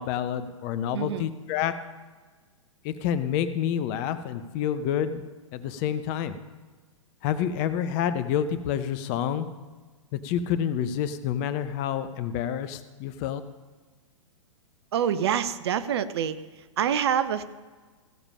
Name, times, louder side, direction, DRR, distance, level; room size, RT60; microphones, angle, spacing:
voice 1, 0.0-1.7 2.8-5.2 5.5-6.4 7.2-9.5 10.1-13.4, left 9 dB, 35° left, 11 dB, 0.8 m, -28 dB
voice 2, 0.9-1.3 14.9-16.4 16.8-17.4, right 8 dB, 55° right, 13 dB, 0.7 m, -26 dB
15.5 x 6.9 x 5.5 m, 1.4 s
figure-of-eight pair, 110°, 17 cm